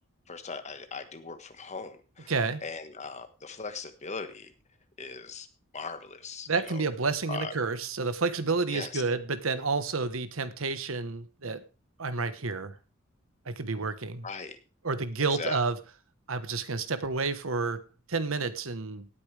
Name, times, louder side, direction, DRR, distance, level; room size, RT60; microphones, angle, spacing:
voice 1, 0.3-2.3 2.6-4.5 5.0-5.5 5.7-6.8 7.3-7.5 8.7-9.0 14.2-14.6 15.3-15.6, left 4 dB, 35° left, 8 dB, 1.5 m, -39 dB
voice 2, 2.3-2.6 6.5-11.6 12.0-12.8 13.5-14.3 14.8-15.8 16.3-17.8 18.1-19.1, right 4 dB, 85° right, 12 dB, 1.2 m, -30 dB
17.5 x 8.6 x 3.4 m, 0.33 s
head